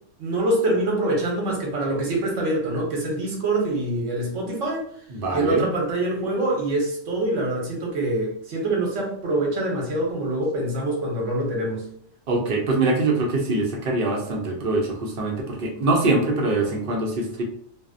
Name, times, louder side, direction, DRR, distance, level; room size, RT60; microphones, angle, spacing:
voice 1, 0.2-4.9 5.3-11.8, right 1 dB, 80° right, 0 dB, 1.0 m, -25 dB
voice 2, 5.1-5.6 12.3-17.4, right 2 dB, 60° right, 0 dB, 0.7 m, -23 dB
2.6 x 2.0 x 2.4 m, 0.63 s
omnidirectional pair, 1.3 m